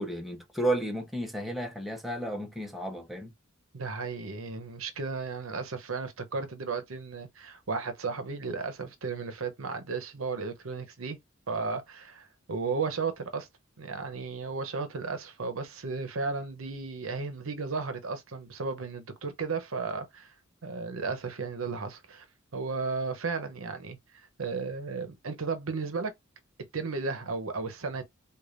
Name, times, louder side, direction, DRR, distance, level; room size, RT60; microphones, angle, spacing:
voice 1, 0.0-3.3, right 1 dB, ahead, 0.8 m, -32 dB
voice 2, 3.7-11.2 11.5-13.5 13.8-20.3 20.6-22.3 22.5-24.0 24.4-26.1 26.7-28.0, right 4 dB, 85° right, 0.8 m, -34 dB
4.9 x 2.4 x 2.5 m
head